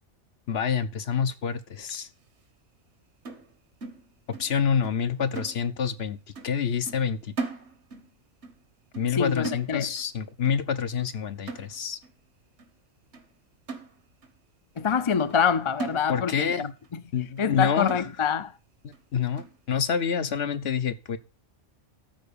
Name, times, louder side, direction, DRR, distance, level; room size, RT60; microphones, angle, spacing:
voice 1, 0.5-2.1 4.4-6.2 6.4-7.3 9.0-12.0 16.1-16.7 17.1-18.1 18.8-21.2, left 7 dB, 60° left, 1.0 m, -27 dB
sound 1, 3.3-4.6 4.8-5.1 5.4-6.1 6.4-6.6 6.9-8.1 8.4-8.6 8.9-9.2 9.4-10.1 10.5-10.7 11.0-11.2 11.5-12.1 12.6-12.7 13.1-13.3 13.7-14.4 14.8-14.9 15.3-15.5 15.8-16.5 16.8-16.9 17.4-17.5 17.9-18.4 18.9-19.0 19.4-19.6, right 3 dB, 65° right, 1.7 m, -39 dB
voice 2, 9.1-9.9 14.8-16.7 17.4-18.5, left 7 dB, 35° left, 0.5 m, -25 dB
13.5 x 4.6 x 6.9 m
omnidirectional pair, 1.2 m